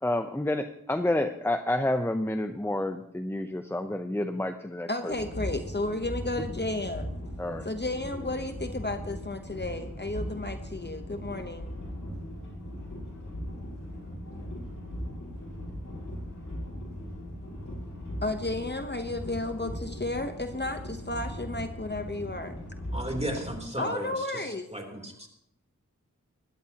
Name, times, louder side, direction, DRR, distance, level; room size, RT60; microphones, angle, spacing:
voice 1, 0.0-5.1 7.4-7.7, left 1 dB, 5° left, 8 dB, 0.7 m, -29 dB
voice 2, 4.9-7.1 7.6-11.7 18.2-22.6 23.8-24.7, left 2 dB, 35° left, 7 dB, 1.0 m, -33 dB
sound 1, 5.1-23.6, equal, 85° left, 5.2 m, -38 dB
voice 3, 22.9-25.3, right 1 dB, 20° right, 2 dB, 3.4 m, -35 dB
20.0 x 14.0 x 2.9 m, 0.76 s
wide cardioid pair, 45°, 32 cm